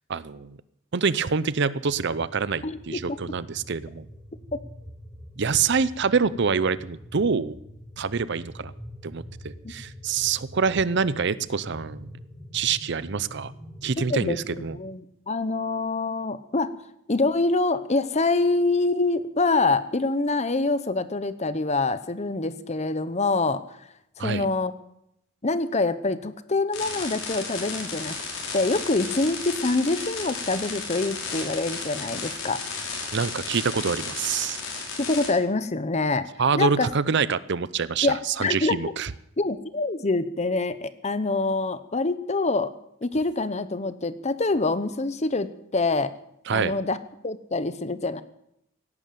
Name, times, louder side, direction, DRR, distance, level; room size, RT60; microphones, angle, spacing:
voice 1, 0.1-0.6 0.9-4.0 5.4-7.5 8.0-8.7 9.0-12.1 12.5-13.5 13.8-14.8 24.2-24.5 33.1-34.6 36.4-39.1 46.5-46.7, right 5 dB, 55° right, 17 dB, 0.6 m, -26 dB
sound 1, 1.8-14.8, equal, ahead, 3.7 m, -44 dB
voice 2, 2.6-3.2 4.5-4.6 14.0-16.7 17.1-23.6 24.2-24.7 25.4-28.2 28.5-32.6 35.0-36.3 36.6-36.9 38.0-38.8 39.4-42.7 43.0-46.1 46.5-47.0 47.2-48.2, left 3 dB, 35° left, 13 dB, 0.9 m, -25 dB
sound 2, 26.7-35.3, left 4 dB, 85° left, 5.5 m, -34 dB
17.5 x 11.0 x 7.6 m, 0.77 s
head